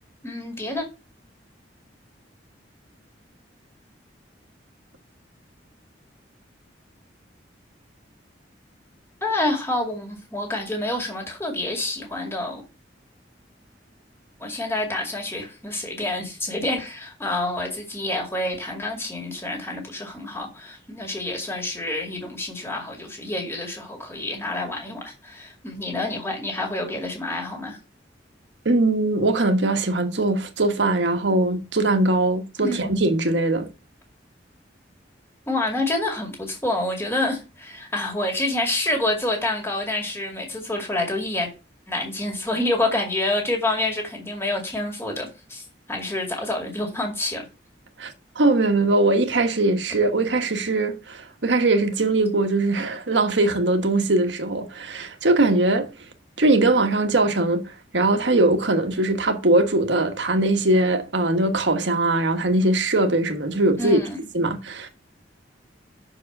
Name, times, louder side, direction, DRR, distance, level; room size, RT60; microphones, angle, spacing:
voice 1, 0.2-0.8 9.2-12.6 14.4-27.8 32.6-32.9 35.5-41.5 41.9-47.4 63.8-64.2, left 2 dB, 15° left, 2.2 m, -28 dB
voice 2, 28.6-33.7 48.0-55.9 56.4-64.0 64.3-64.9, right 2 dB, 75° right, 1.2 m, -21 dB
6.4 x 4.7 x 6.5 m
head